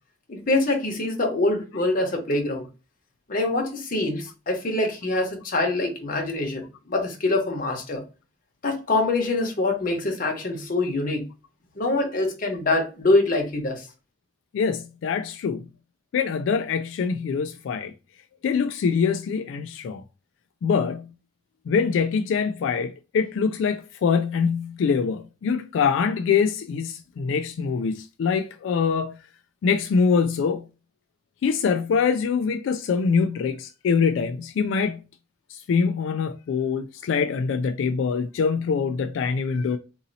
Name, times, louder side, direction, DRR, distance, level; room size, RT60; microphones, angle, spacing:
voice 1, 0.3-2.7 3.3-8.0 8.6-11.3 11.8-13.9, left 2 dB, 45° left, 1.0 m, -24 dB
voice 2, 14.5-15.7 16.1-17.9 18.4-20.0 20.6-21.1 21.7-29.2 29.6-30.7 31.4-35.0 35.5-39.8, left 5 dB, 85° left, 0.3 m, -24 dB
4.0 x 2.7 x 2.7 m
head